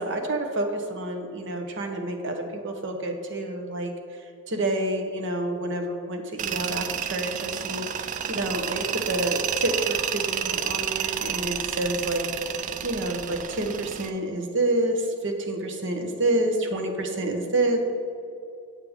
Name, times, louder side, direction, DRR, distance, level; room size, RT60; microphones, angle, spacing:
voice 1, 0.0-12.3 12.8-17.8, right 1 dB, 60° right, 4 dB, 1.0 m, -28 dB
Tools, 6.4-14.1, right 8 dB, 35° right, 0.3 m, -30 dB
8.6 x 8.4 x 3.6 m, 2.5 s
head